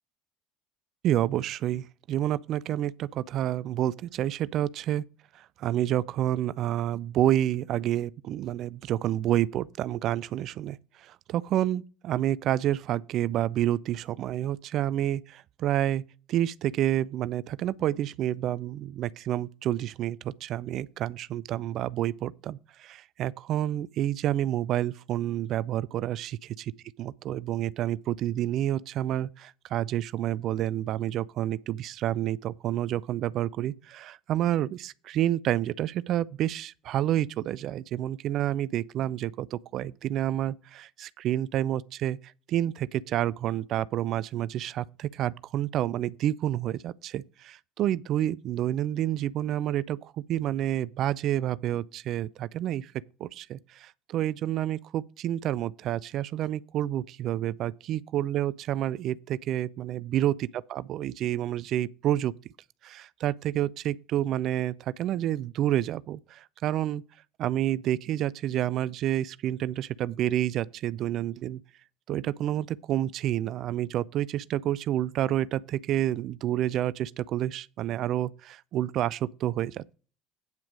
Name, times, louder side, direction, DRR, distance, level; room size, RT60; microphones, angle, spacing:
voice 1, 1.0-5.0 5.3-16.0 16.3-26.7 27.0-52.9 53.2-62.3 62.8-67.0 67.4-71.6 72.1-79.9, right 12 dB, 50° right, 0.4 m, -29 dB
9.1 x 5.8 x 4.9 m
figure-of-eight pair, 65°, 0 cm